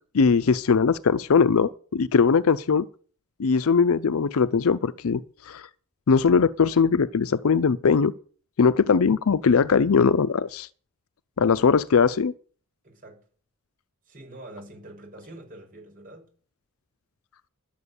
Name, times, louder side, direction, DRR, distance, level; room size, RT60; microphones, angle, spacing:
voice 1, 0.1-2.9 3.4-5.7 6.1-8.1 8.6-10.7 11.4-12.3, left 5 dB, 70° left, 0.5 m, -20 dB
voice 2, 12.8-13.2 14.1-16.3, right 1 dB, 40° right, 5.4 m, -45 dB
12.0 x 8.2 x 7.0 m
head